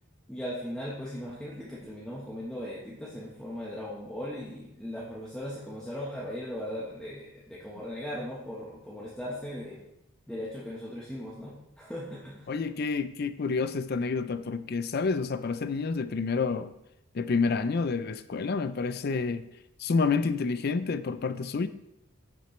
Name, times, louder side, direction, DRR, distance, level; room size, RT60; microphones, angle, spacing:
voice 1, 0.3-9.8 10.3-12.5, equal, 5° left, 1.1 m, -38 dB
voice 2, 12.5-16.7 17.1-19.4 19.8-21.7, left 4 dB, 50° left, 0.4 m, -29 dB
9.9 x 6.2 x 3.2 m
head